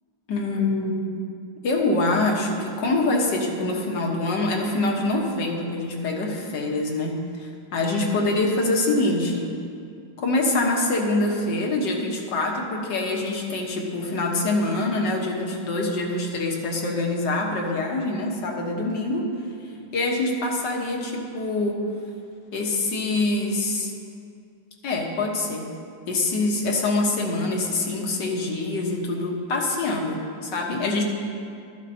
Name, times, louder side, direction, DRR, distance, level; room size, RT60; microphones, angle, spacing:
voice 1, 0.3-1.1 1.6-9.5 10.2-19.3 19.9-21.8 22.5-23.9 24.8-25.7 26.1-31.0, left 2 dB, 60° left, 0 dB, 1.9 m, -25 dB
15.0 x 13.0 x 2.8 m, 2.4 s
omnidirectional pair, 2.3 m